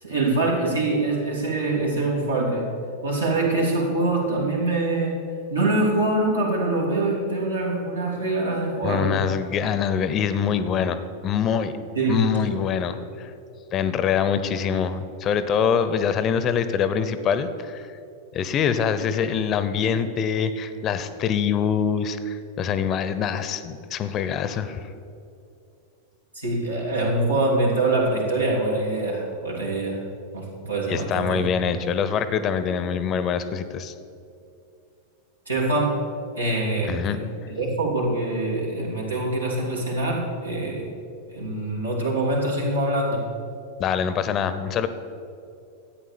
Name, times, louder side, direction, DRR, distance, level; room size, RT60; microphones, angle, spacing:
voice 1, 0.0-2.7 3.0-5.2 5.5-9.2 11.9-12.4 26.3-30.0 30.3-31.7 35.5-36.0 36.4-40.9 41.3-43.3, right 2 dB, 80° right, -3 dB, 3.1 m, -24 dB
voice 2, 8.8-11.7 12.1-13.3 13.7-17.9 18.3-24.8 30.9-33.9 36.8-37.2 43.8-44.9, left 7 dB, 30° left, 12 dB, 0.8 m, -24 dB
13.0 x 8.9 x 7.1 m, 2.6 s
figure-of-eight pair, 90°, 0 cm